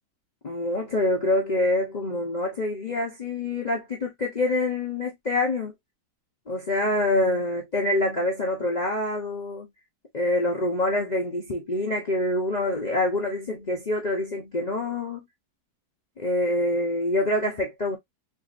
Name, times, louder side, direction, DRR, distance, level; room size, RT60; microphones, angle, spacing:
voice 1, 0.4-5.7 6.5-9.7 10.1-15.2 16.2-18.0, left 2 dB, 50° left, 0.5 m, -26 dB
3.7 x 2.5 x 2.4 m
omnidirectional pair, 1.8 m